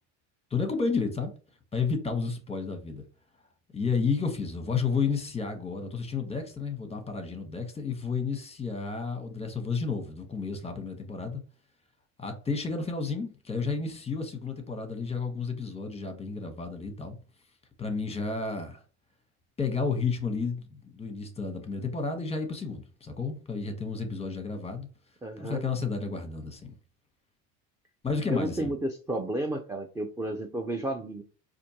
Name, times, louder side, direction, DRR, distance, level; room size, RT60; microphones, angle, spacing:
voice 1, 0.5-1.3 1.7-3.0 3.7-11.4 12.2-17.2 17.8-18.8 19.6-24.9 25.4-26.7 28.0-28.7, left 4 dB, 15° left, 0.9 m, -31 dB
voice 2, 25.2-25.6 28.3-31.2, right 1 dB, 10° right, 0.4 m, -32 dB
4.3 x 2.6 x 2.8 m
supercardioid pair, 90°, 39 cm